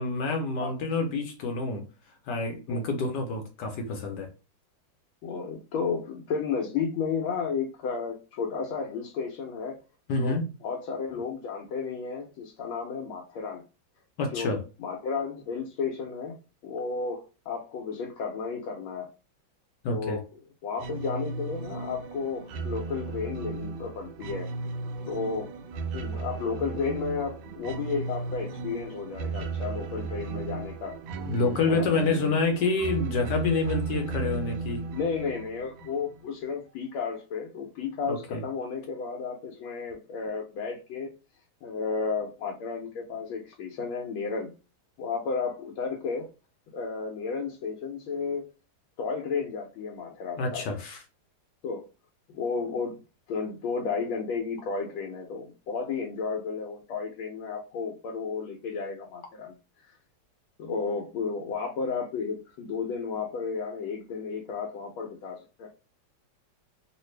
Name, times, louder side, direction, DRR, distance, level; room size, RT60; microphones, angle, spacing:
voice 1, 0.0-1.8 2.3-4.3 10.1-10.5 14.2-14.6 19.8-20.2 31.2-34.9 38.1-38.4 50.4-51.0, left 3 dB, 70° left, 1.2 m, -28 dB
voice 2, 5.2-9.8 10.2-13.6 14.3-19.1 19.9-20.2 20.6-24.5 25.1-25.5 25.9-31.0 31.7-31.9 34.9-41.1 41.6-44.5 45.0-46.3 46.7-48.4 49.0-50.6 51.6-51.8 52.3-53.0 53.3-59.9 60.6-65.7, left 5 dB, 85° left, 1.4 m, -33 dB
sound 1, 20.8-36.3, right 4 dB, 80° right, 1.3 m, -35 dB
3.2 x 2.5 x 3.1 m
omnidirectional pair, 2.2 m